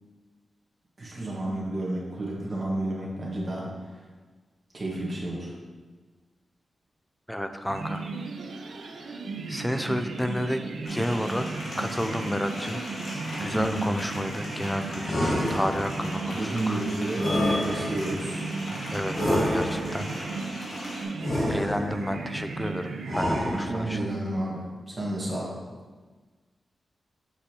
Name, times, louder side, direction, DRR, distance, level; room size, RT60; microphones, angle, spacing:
voice 1, 1.0-4.0 4.7-5.5 13.5-13.9 16.3-17.3 17.6-18.4 23.7-25.6, right 1 dB, 30° right, -4 dB, 1.4 m, -31 dB
voice 2, 7.3-8.1 9.1-9.2 9.5-10.6 10.9-11.5 11.8-12.8 13.4-16.8 18.9-20.1 21.5-24.1, equal, 5° left, 7 dB, 0.3 m, -31 dB
sound 1, 7.7-24.3, right 3 dB, 75° right, 0.5 m, -36 dB
sound 2, 10.8-21.0, left 1 dB, 90° left, 1.7 m, -39 dB
sound 3, 15.0-16.1 17.2-18.2 19.1-20.1 21.2-22.1 23.1-24.0, left 1 dB, 45° left, 1.4 m, -28 dB
6.8 x 4.8 x 2.9 m, 1.4 s
wide cardioid pair, 155°, 0 cm